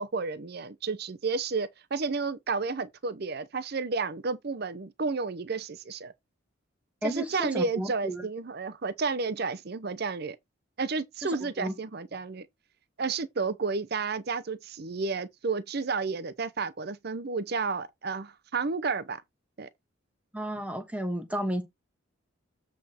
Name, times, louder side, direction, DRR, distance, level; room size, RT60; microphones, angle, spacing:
voice 1, 0.0-6.1 7.0-10.4 10.8-12.5 13.0-19.2 19.6-19.7, right 4 dB, 50° right, 0.7 m, -31 dB
voice 2, 7.0-8.2 11.2-11.7 20.3-21.6, right 1 dB, 5° right, 1.2 m, -32 dB
8.1 x 4.9 x 4.3 m
head